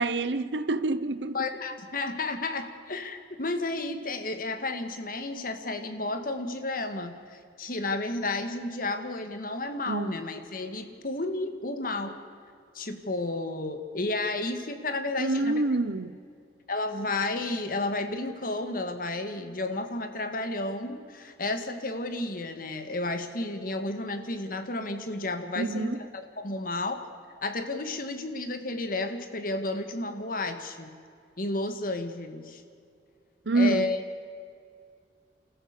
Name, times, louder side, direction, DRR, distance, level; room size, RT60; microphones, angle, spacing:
voice 1, 0.0-1.4 9.9-10.2 15.2-16.2 25.6-26.0 33.5-33.9, right 2 dB, 85° right, 0.9 m, -27 dB
voice 2, 1.3-12.2 12.7-15.6 16.7-27.0 27.4-30.9 31.4-32.6 33.6-34.0, left 2 dB, 55° left, 1.9 m, -32 dB
28.5 x 14.5 x 6.8 m
head